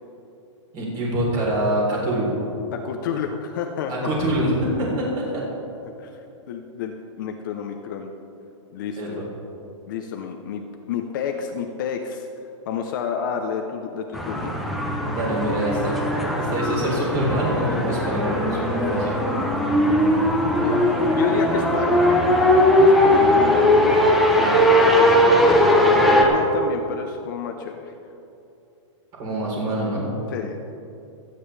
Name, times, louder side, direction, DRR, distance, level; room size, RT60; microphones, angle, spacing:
voice 1, 0.7-2.3 3.9-5.4 9.0-9.2 15.1-15.9 16.4-19.1 29.2-30.1, right 1 dB, 25° right, -3 dB, 3.7 m, -25 dB
voice 2, 2.7-4.2 6.0-6.1 6.5-8.1 8.7-9.2 9.9-12.3 12.7-14.6 20.6-22.3 22.8-25.6 26.1-27.9 30.3-30.6, left 7 dB, 40° left, 4 dB, 0.8 m, -30 dB
sound 1, 14.1-26.2, left 1 dB, ahead, 0.9 m, -19 dB
25.0 x 9.4 x 3.4 m, 2.7 s
hypercardioid pair, 165°, 16 cm